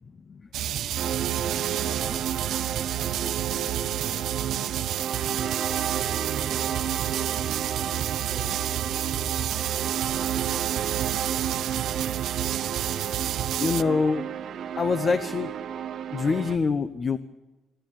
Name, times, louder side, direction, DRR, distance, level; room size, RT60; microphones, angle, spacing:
sound 1, 0.5-13.8, right 12 dB, 75° right, 0.7 m, -30 dB
voice 1, 0.6-2.2 2.9-4.9 5.2-7.0 7.7-8.7 9.1-10.2, left 4 dB, 60° left, 0 dB, 5.1 m, -49 dB
sound 2, 0.9-16.6, right 9 dB, 60° right, 1.0 m, -32 dB
voice 2, 13.6-14.2 14.8-15.5 16.1-17.2, left 4 dB, 35° left, 10 dB, 0.9 m, -24 dB
27.0 x 11.5 x 8.9 m, 1.1 s
cardioid pair, 120°, 0 cm